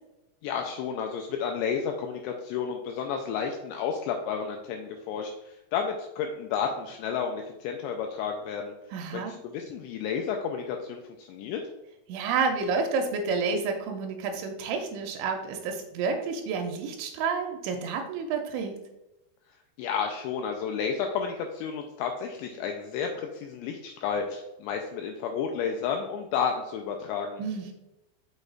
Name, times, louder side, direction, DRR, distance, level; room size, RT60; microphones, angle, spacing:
voice 1, 0.4-8.7 9.1-11.6 19.8-27.4, left 6 dB, 85° left, 3 dB, 2.5 m, -31 dB
voice 2, 8.9-9.3 12.1-18.8 27.4-27.7, right 5 dB, 85° right, 3 dB, 2.9 m, -30 dB
6.5 x 6.3 x 2.4 m, 0.93 s
omnidirectional pair, 5.5 m